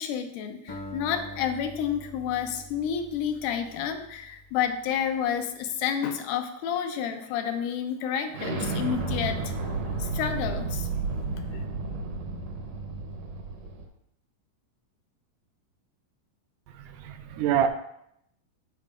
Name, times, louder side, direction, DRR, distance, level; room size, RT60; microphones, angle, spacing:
voice 1, 0.0-9.7 10.0-10.9 11.5-11.6, left 8 dB, 80° left, 7 dB, 2.1 m, -30 dB
Acoustic guitar, 0.7-5.1, left 1 dB, 25° left, 0.7 m, -44 dB
Explosion, 8.3-13.9, right 3 dB, 65° right, 1.8 m, -32 dB
voice 2, 16.7-17.7, right 9 dB, 80° right, 7 dB, 2.0 m, -27 dB
13.0 x 4.5 x 2.4 m, 0.74 s
omnidirectional pair, 3.8 m